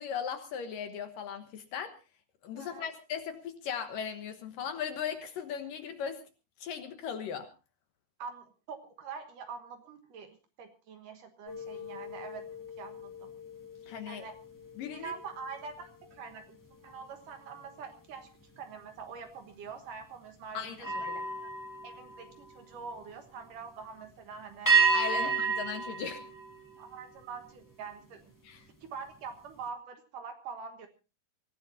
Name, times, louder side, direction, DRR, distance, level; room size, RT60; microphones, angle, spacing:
voice 1, 0.0-1.9 2.4-6.2 6.6-7.5 13.9-14.2 14.8-15.1 20.5-21.2 24.9-26.2 28.4-28.7, left 7 dB, 65° left, 7 dB, 2.5 m, -38 dB
voice 2, 2.5-2.9 8.2-12.5 12.8-13.3 14.1-14.4 14.9-16.6 16.8-18.3 18.6-21.1 21.4-21.5 21.8-24.8 25.1-25.4 26.8-28.3 28.8-30.9, right 5 dB, 60° right, 7 dB, 2.6 m, -44 dB
sound 1, 11.5-17.0 17.5-17.8 20.8-22.9 24.7-27.2, right 5 dB, 5° left, 1.5 m, -33 dB
25.5 x 15.5 x 2.7 m, 0.32 s
omnidirectional pair, 4.7 m